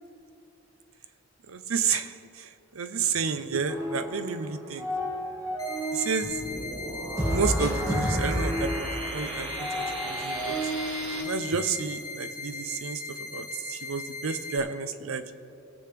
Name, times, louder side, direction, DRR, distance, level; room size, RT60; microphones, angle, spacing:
voice 1, 1.5-2.5 2.7-4.9 5.9-6.4 7.3-9.7 10.0-10.6 11.2-15.3, right 5 dB, 80° right, 11 dB, 0.6 m, -31 dB
sound 1, 3.7-4.4 4.7-6.3 7.2-11.2, equal, 15° right, 1.9 m, -30 dB
sound 2, 5.6-14.6, left 3 dB, 15° left, 1.1 m, -39 dB
sound 3, 6.2-11.2, right 2 dB, 65° right, 1.9 m, -37 dB
21.5 x 7.6 x 3.4 m, 2.8 s
head